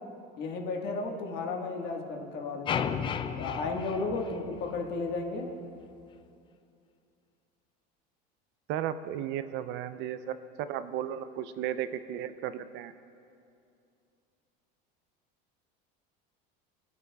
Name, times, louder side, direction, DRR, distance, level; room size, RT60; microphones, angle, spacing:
voice 1, 0.4-3.0 3.4-5.5, left 3 dB, 55° left, 1 dB, 1.5 m, -34 dB
sound 1, 2.7-4.9, left 7 dB, 25° left, 0.3 m, -33 dB
voice 2, 8.7-12.9, right 10 dB, 60° right, 13 dB, 0.4 m, -35 dB
21.5 x 8.2 x 2.3 m, 2.5 s
supercardioid pair, 130°, 21 cm